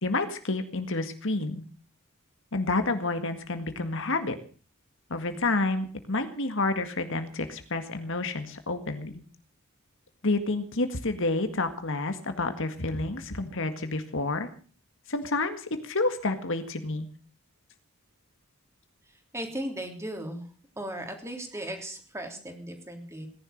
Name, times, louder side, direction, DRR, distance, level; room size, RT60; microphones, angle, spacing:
voice 1, 0.0-1.6 2.5-4.4 5.1-9.1 10.2-14.5 15.1-17.1, left 2 dB, 60° left, 8 dB, 1.9 m, -29 dB
voice 2, 19.3-20.5 20.8-23.3, right 1 dB, 15° right, 4 dB, 3.4 m, -36 dB
18.0 x 11.0 x 6.6 m, 0.40 s
head